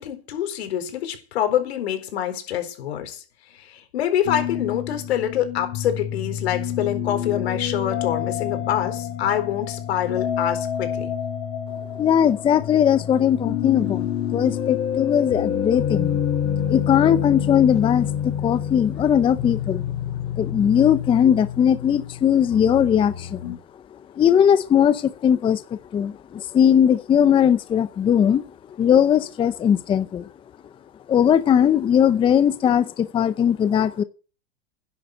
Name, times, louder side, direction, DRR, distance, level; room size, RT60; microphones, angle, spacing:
voice 1, 0.0-3.2 3.5-11.1, left 10 dB, 80° left, 4.2 m, -26 dB
sound 1, 4.2-23.6, left 9 dB, 55° left, 4.3 m, -28 dB
voice 2, 12.0-16.2 16.7-19.8 20.4-23.5 24.1-28.4 28.8-30.3 31.1-34.0, left 9 dB, 15° left, 0.6 m, -19 dB
10.5 x 9.6 x 7.7 m
supercardioid pair, 135°, 31 cm